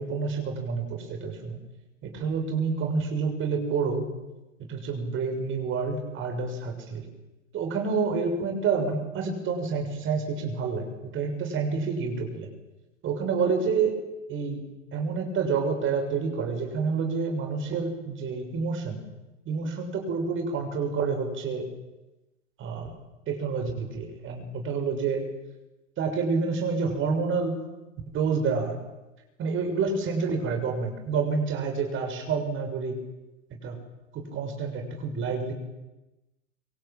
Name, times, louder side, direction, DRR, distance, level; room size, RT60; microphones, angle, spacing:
voice 1, 0.0-1.6 2.0-4.1 4.6-7.0 7.5-10.9 11.1-12.5 13.0-14.0 14.3-14.6 14.9-19.0 19.4-21.7 22.6-22.9 23.3-25.2 26.0-27.6 28.1-28.8 29.4-33.0 33.5-33.8 34.1-35.5, right 5 dB, 30° right, 4 dB, 6.7 m, -28 dB
25.5 x 25.5 x 9.0 m, 1.0 s
figure-of-eight pair, 95°, 38 cm